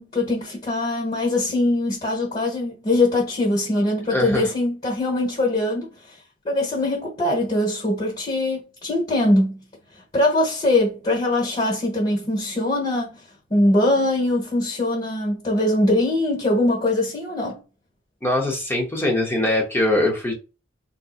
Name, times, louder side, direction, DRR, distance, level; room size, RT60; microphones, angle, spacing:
voice 1, 0.0-5.9 6.4-9.6 10.1-13.2 13.5-17.6, left 1 dB, 30° left, 1.3 m, -22 dB
voice 2, 4.1-4.5 18.2-20.3, left 1 dB, 10° left, 0.7 m, -22 dB
3.7 x 2.8 x 2.4 m
head